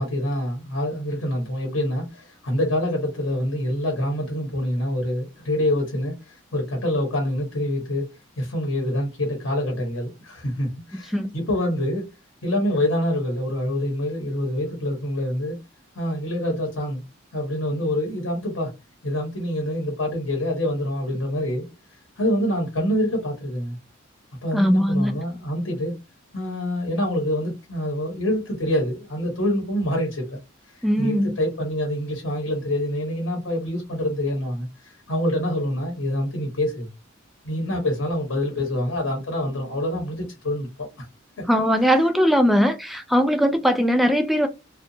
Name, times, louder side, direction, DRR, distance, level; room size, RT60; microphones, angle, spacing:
voice 1, 0.0-8.1 8.4-12.1 12.4-15.6 15.9-17.0 17.3-18.7 19.0-21.7 22.2-23.8 24.4-25.9 26.3-30.4 30.7-36.9 37.4-41.0, left 1 dB, 65° left, 0.9 m, -26 dB
voice 2, 24.5-25.2 30.8-31.4 41.5-44.5, equal, ahead, 0.3 m, -20 dB
2.7 x 2.2 x 2.6 m
head